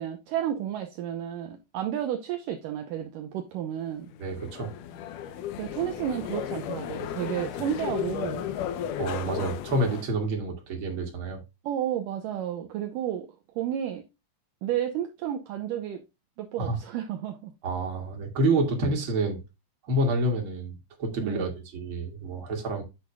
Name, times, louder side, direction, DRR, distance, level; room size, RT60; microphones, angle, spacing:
voice 1, 0.0-4.1 5.6-8.4 11.6-13.3 13.6-14.0 14.6-16.0 16.4-17.5 21.2-21.5, right 10 dB, 75° right, 2.3 m, -31 dB
sound 1, 4.1-10.0, left 10 dB, 75° left, 2.1 m, -34 dB
voice 2, 4.2-4.7 9.0-11.4 16.6-16.8 17.6-19.4 19.9-22.8, right 2 dB, 40° right, 2.7 m, -28 dB
8.3 x 8.2 x 2.4 m
omnidirectional pair, 4.4 m